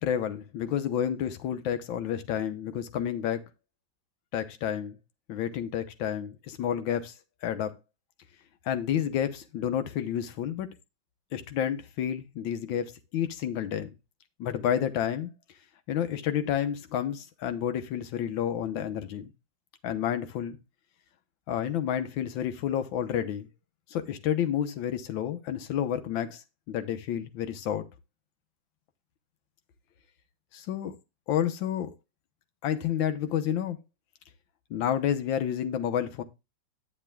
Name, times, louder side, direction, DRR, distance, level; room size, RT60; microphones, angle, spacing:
voice 1, 0.0-3.4 4.3-5.0 5.3-7.1 7.4-7.7 8.6-10.7 11.3-13.9 14.4-15.3 15.9-19.3 19.8-20.6 21.5-23.5 23.9-27.9 30.5-30.9 31.3-31.9 32.6-33.8 34.7-36.2, left 9 dB, 80° left, 1.7 m, -30 dB
9.8 x 9.6 x 2.2 m
omnidirectional pair, 2.1 m